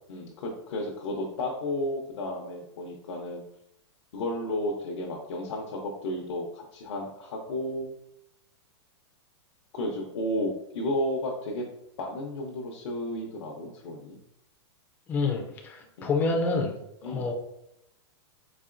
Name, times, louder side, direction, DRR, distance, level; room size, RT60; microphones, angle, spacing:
voice 1, 0.1-3.4 4.1-7.9 9.7-11.7 12.0-14.2 16.0-16.1 17.0-17.3, left 1 dB, 85° left, -1 dB, 0.7 m, -33 dB
voice 2, 15.1-17.3, left 3 dB, 10° left, 1 dB, 0.3 m, -28 dB
4.1 x 2.9 x 2.5 m, 0.82 s
supercardioid pair, 155°, 15 cm